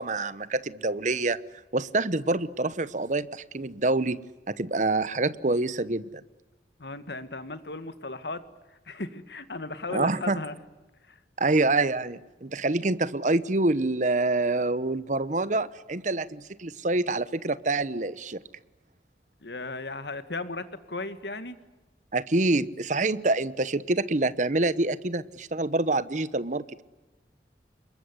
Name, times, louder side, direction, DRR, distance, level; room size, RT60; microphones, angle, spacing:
voice 1, 0.0-1.4 1.7-4.2 4.5-6.2 9.9-10.4 11.4-18.4 22.1-26.8, right 2 dB, 45° right, 16 dB, 1.0 m, -26 dB
voice 2, 6.8-8.4 8.7-10.6 11.1-11.2 19.4-21.6, left 2 dB, 70° left, 11 dB, 2.0 m, -36 dB
26.5 x 22.0 x 9.8 m, 1.1 s
head